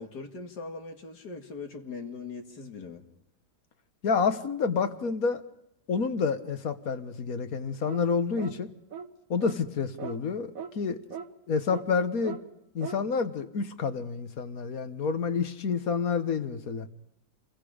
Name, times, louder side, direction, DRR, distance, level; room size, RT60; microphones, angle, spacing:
voice 1, 0.0-3.0, left 4 dB, 85° left, 4 dB, 2.6 m, -40 dB
voice 2, 4.0-5.4 5.9-8.7 9.3-11.0 11.5-12.4 12.7-16.9, left 5 dB, 60° left, 10 dB, 1.7 m, -29 dB
sound 1, 7.9-8.1 8.4-8.6 8.9-9.1 9.4-9.6 10.0-10.2 10.6-10.7 11.1-11.3 11.7-11.8 12.2-12.4 12.8-13.0, right 7 dB, 60° right, 1.6 m, -38 dB
29.0 x 22.5 x 5.1 m, 0.79 s
omnidirectional pair, 1.7 m